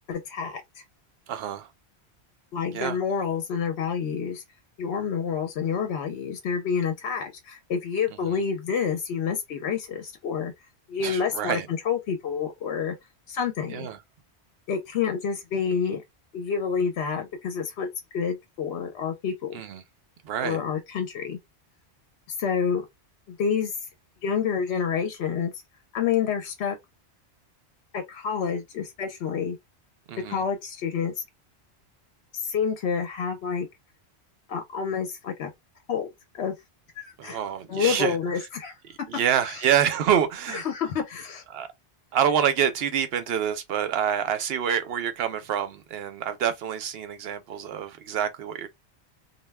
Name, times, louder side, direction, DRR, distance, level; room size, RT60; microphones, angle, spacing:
voice 1, 0.1-0.8 2.5-4.4 4.8-10.5 10.9-11.6 11.8-12.9 13.3-13.9 14.7-16.0 16.3-17.9 18.1-19.5 20.4-21.4 22.3-22.9 23.3-23.8 24.2-25.5 25.9-26.8 27.9-29.6 30.3-31.2 32.3-33.7 34.5-35.5 35.9-36.1 36.3-36.5 37.0-37.4 37.7-38.8 39.5-39.6 40.5-41.4, left 6 dB, 70° left, 0.8 m, -28 dB
voice 2, 1.3-1.7 2.7-3.0 8.3-8.4 11.0-11.7 13.7-14.0 19.5-19.8 20.2-20.6 30.1-30.4 37.2-38.2 38.9-40.7 41.5-41.7 42.1-48.7, right 9 dB, 65° right, 0.8 m, -27 dB
2.3 x 2.2 x 3.3 m
omnidirectional pair, 1.1 m